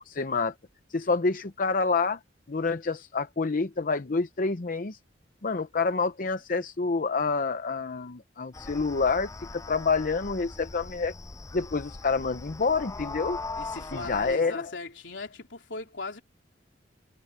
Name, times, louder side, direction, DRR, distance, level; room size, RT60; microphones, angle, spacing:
voice 1, 0.1-0.5 0.9-2.2 2.5-5.0 5.4-11.1 11.5-13.4 13.9-14.7, left 4 dB, 45° left, 0.7 m, -28 dB
sound 1, 8.5-14.4, left 3 dB, 15° left, 0.4 m, -40 dB
voice 2, 13.6-16.2, left 3 dB, 70° left, 4.1 m, -38 dB
head